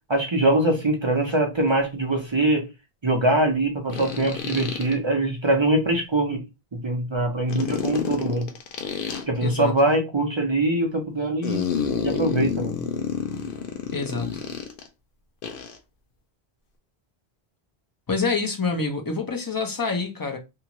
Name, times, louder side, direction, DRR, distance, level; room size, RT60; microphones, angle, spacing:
voice 1, 0.1-2.7 3.0-6.4 6.7-8.5 9.3-11.6 12.0-12.8, right 1 dB, 35° right, 0.5 m, -23 dB
sound 1, 1.3-1.4 3.9-4.9 7.5-9.2 11.4-14.9 15.4-15.8, left 6 dB, 65° left, 0.7 m, -29 dB
voice 2, 9.4-9.8 13.9-14.4 18.1-20.4, left 4 dB, 25° left, 0.5 m, -27 dB
2.6 x 2.4 x 2.9 m
omnidirectional pair, 1.0 m